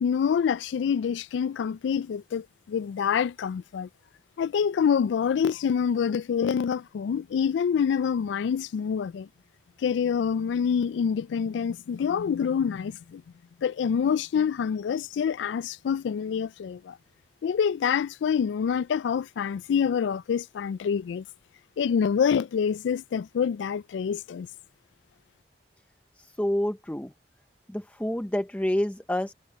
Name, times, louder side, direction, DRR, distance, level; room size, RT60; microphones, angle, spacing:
voice 1, 0.0-3.9 4.4-9.3 9.8-13.2 13.6-17.0 17.4-21.2 21.8-24.5, left 7 dB, 80° left, 0.3 m, -26 dB
voice 2, 26.4-27.1 27.7-29.3, left 1 dB, 10° left, 0.5 m, -28 dB
head